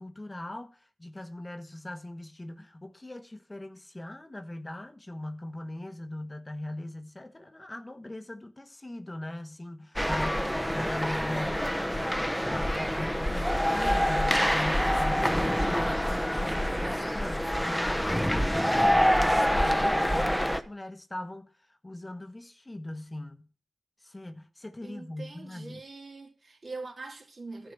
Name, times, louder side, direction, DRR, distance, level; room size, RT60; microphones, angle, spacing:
voice 1, 0.0-11.7 12.4-23.5 24.0-25.8, left 1 dB, 25° left, 1.1 m, -40 dB
sound 1, 10.0-20.6, equal, 5° left, 0.9 m, -26 dB
voice 2, 24.8-27.7, right 3 dB, 55° right, 2.9 m, -43 dB
11.5 x 4.7 x 8.4 m
cardioid pair, 45°, 0 cm